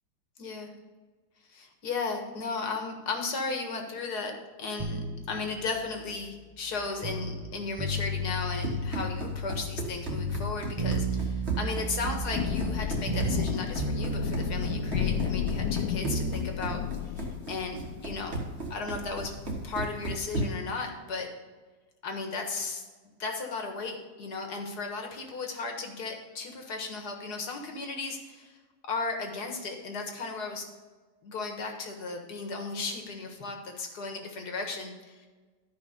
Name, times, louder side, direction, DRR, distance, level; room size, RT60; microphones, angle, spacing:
voice 1, 0.4-0.7 1.5-18.4 18.7-19.3 19.6-21.3 22.0-22.8 23.2-28.6 28.9-30.6 31.2-35.3, left 4 dB, 65° left, 3 dB, 2.1 m, -35 dB
sound 1, 4.8-7.5 7.8-9.8 10.1-13.5 13.8-16.4 16.7-16.8, right 1 dB, 20° right, 0.9 m, -34 dB
Run, 8.3-20.7, right 2 dB, 40° right, 1.8 m, -36 dB
Thunder / Rain, 11.9-20.4, left 10 dB, 90° left, 1.3 m, -34 dB
13.0 x 5.5 x 5.1 m, 1.3 s
omnidirectional pair, 1.8 m